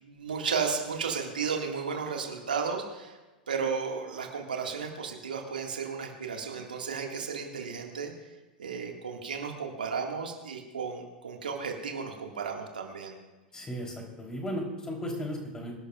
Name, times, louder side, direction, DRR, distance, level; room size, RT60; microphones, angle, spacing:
voice 1, 0.0-3.2 3.5-8.1 8.6-13.1, right 5 dB, 75° right, 2 dB, 1.9 m, -34 dB
voice 2, 13.5-15.7, equal, 15° left, 0 dB, 3.6 m, -35 dB
25.5 x 12.0 x 2.4 m, 1.2 s
figure-of-eight pair, 90°, 5 cm